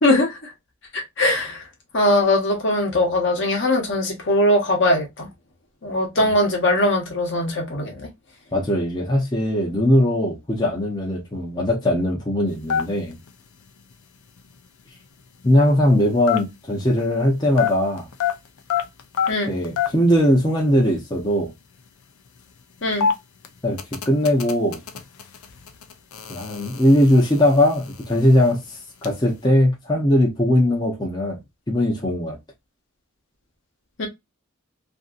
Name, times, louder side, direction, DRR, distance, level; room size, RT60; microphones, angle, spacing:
voice 1, 0.0-0.5 0.9-1.6 1.9-5.3 5.8-8.1 19.3-19.5 22.8-23.1 34.0-34.1, left 1 dB, 55° left, 1.0 m, -20 dB
voice 2, 8.5-13.2 15.4-18.1 19.5-21.5 23.6-23.8 24.0-24.8 26.3-31.4 31.7-32.4, left 1 dB, 20° left, 0.6 m, -20 dB
sound 1, 12.5-17.2 17.5-20.1 20.4-20.5 20.7-21.0 21.5-29.1, left 7 dB, 90° left, 0.5 m, -28 dB
2.7 x 2.6 x 2.4 m
head